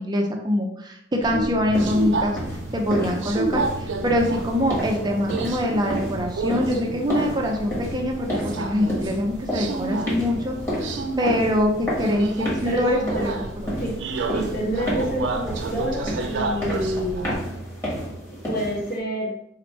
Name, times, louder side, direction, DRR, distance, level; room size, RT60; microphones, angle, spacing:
voice 1, 0.0-2.4 2.7-13.4, left 1 dB, 25° right, 1 dB, 0.4 m, -24 dB
Subway metro underground, 1.2-17.4, right 3 dB, 80° right, 0.4 m, -31 dB
sound 1, 1.7-19.0, equal, 15° left, 1.4 m, -31 dB
voice 2, 14.3-17.4 18.4-19.3, equal, 55° left, -4 dB, 1.3 m, -28 dB
4.2 x 2.9 x 3.1 m, 0.76 s
head